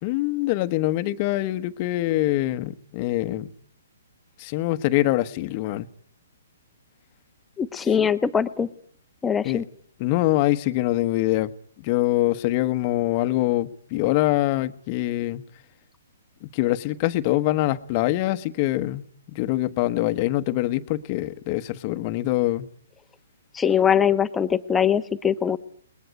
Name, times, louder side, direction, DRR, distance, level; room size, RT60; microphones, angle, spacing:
voice 1, 0.0-3.5 4.4-5.9 9.4-9.6 10.0-11.5 11.8-15.4 16.4-22.7, left 16 dB, 35° left, 1.3 m, -24 dB
voice 2, 7.6-8.7 9.2-9.6 23.5-25.6, left 8 dB, 10° left, 1.2 m, -22 dB
29.0 x 20.5 x 9.6 m
hypercardioid pair, 155°, 0 cm